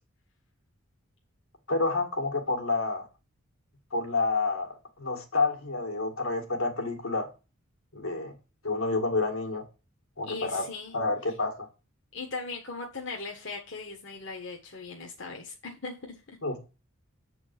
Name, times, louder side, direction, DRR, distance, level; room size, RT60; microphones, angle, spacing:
voice 1, 1.7-3.1 3.9-7.3 7.9-8.3 8.6-9.6 10.2-10.7 10.9-11.7 16.4-16.6, left 3 dB, 80° left, 2 dB, 2.2 m, -29 dB
voice 2, 10.3-11.0 12.1-16.4, left 3 dB, 55° left, 0 dB, 1.4 m, -39 dB
8.0 x 4.4 x 6.0 m, 0.31 s
head